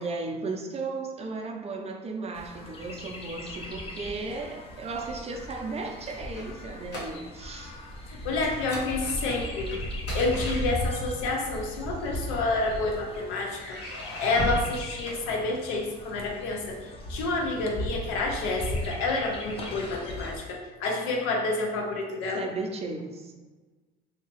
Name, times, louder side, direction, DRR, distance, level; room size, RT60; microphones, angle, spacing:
voice 1, 0.0-7.7 22.3-23.3, right 3 dB, 30° right, 3 dB, 0.5 m, -35 dB
Chirp tweet, 2.3-20.4, left 1 dB, 25° left, 0.6 m, -37 dB
sound 1, 5.8-7.5 7.8-8.0 8.4-11.2 12.1-12.9 13.5-15.8, right 1 dB, 55° left, 1.0 m, -37 dB
voice 2, 8.1-9.8 10.1-13.8 14.2-22.5, left 3 dB, 85° left, 1 dB, 0.7 m, -29 dB
2.9 x 2.8 x 2.9 m, 1.3 s
supercardioid pair, 95°, 21 cm